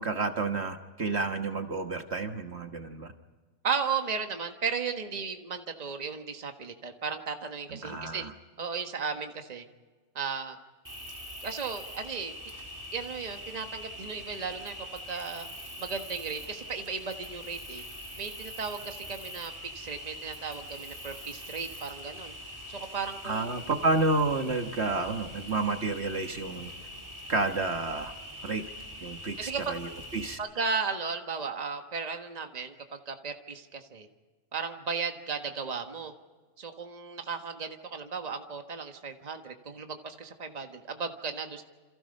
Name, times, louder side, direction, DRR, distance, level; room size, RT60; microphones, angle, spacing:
voice 1, 0.0-3.1 7.7-8.3 23.2-26.7 27.3-28.1 28.4-28.6 29.0-30.4, right 3 dB, 50° right, 5 dB, 1.7 m, -30 dB
voice 2, 3.6-8.2 8.6-9.6 10.1-10.6 11.4-12.3 12.9-15.5 15.8-17.8 18.2-22.3 22.7-23.5 29.4-29.8 30.4-34.1 34.5-36.1 36.6-41.6, right 5 dB, 30° right, 5 dB, 1.5 m, -35 dB
Cricket, 10.8-30.3, left 1 dB, 10° right, 3.9 m, -43 dB
28.5 x 27.0 x 5.4 m, 1.4 s
omnidirectional pair, 1.5 m